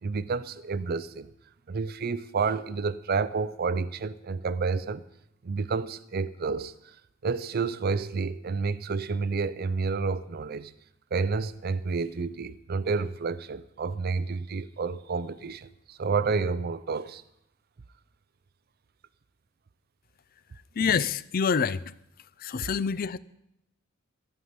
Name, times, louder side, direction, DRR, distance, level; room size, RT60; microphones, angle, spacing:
voice 1, 0.0-1.3 1.7-5.0 5.4-6.9 7.2-10.7 11.1-17.2 22.6-22.7, right 4 dB, 45° right, 0.5 m, -30 dB
voice 2, 20.8-21.8 22.4-23.2, left 6 dB, 45° left, 0.4 m, -26 dB
15.0 x 5.6 x 9.4 m
head